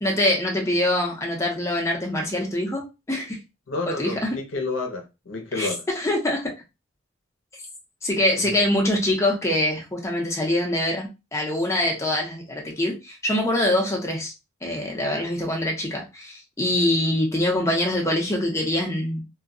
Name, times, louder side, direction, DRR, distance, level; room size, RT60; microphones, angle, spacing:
voice 1, 0.0-3.4 3.9-4.3 5.5-6.5 8.0-14.3 14.6-19.2, left 1 dB, 15° left, 0.7 m, -24 dB
voice 2, 3.7-5.8 8.4-8.5, left 3 dB, 70° left, 0.6 m, -30 dB
2.3 x 2.1 x 3.7 m
head